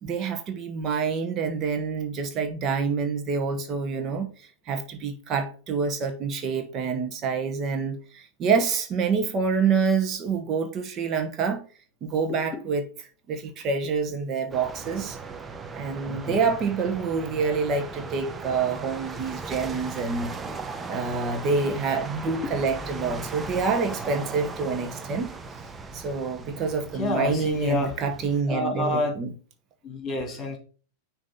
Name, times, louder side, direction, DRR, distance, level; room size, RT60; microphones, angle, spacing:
voice 1, 0.0-11.6 12.0-12.9 13.3-15.2 15.7-20.3 20.9-25.3 25.9-29.3, right 5 dB, 35° right, 0.9 m, -27 dB
voice 2, 12.3-12.6 16.1-16.4 22.3-22.5 27.0-28.0 28.5-29.1 29.8-30.6, left 2 dB, 30° left, 1.9 m, -29 dB
sound 1, 14.5-28.4, right 4 dB, 15° right, 0.6 m, -38 dB
6.1 x 2.8 x 5.5 m
hypercardioid pair, 105°, 0 cm